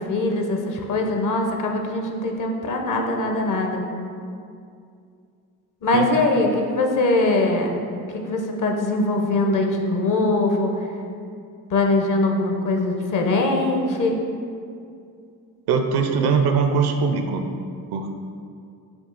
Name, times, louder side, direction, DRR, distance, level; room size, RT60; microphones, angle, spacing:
voice 1, 0.0-3.8 5.8-7.7 8.1-10.7 11.7-14.2, left 2 dB, 45° left, 2 dB, 0.7 m, -22 dB
voice 2, 15.7-17.4 17.9-18.1, right 5 dB, 65° right, 6 dB, 0.5 m, -21 dB
5.3 x 2.4 x 3.8 m, 2.4 s
supercardioid pair, 55°, 42 cm